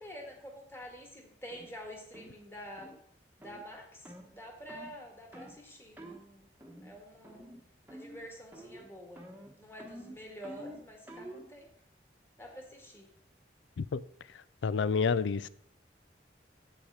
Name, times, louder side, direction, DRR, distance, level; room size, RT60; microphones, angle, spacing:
voice 1, 0.0-2.9 3.4-6.5 6.8-7.4 7.9-9.2 9.6-11.7 12.4-13.1, equal, 15° left, 1.8 m, -48 dB
sound 1, 1.5-1.7 2.1-2.4 2.8-3.0 3.4-3.6 4.0-4.3 4.7-4.9 5.3-5.6 6.0-6.2 6.6-7.0 7.2-7.6 7.9-8.3 8.5-8.9 9.2-11.5, right 1 dB, 10° right, 1.1 m, -48 dB
voice 2, 14.6-15.5, left 5 dB, 80° left, 0.4 m, -29 dB
8.1 x 6.0 x 5.6 m
head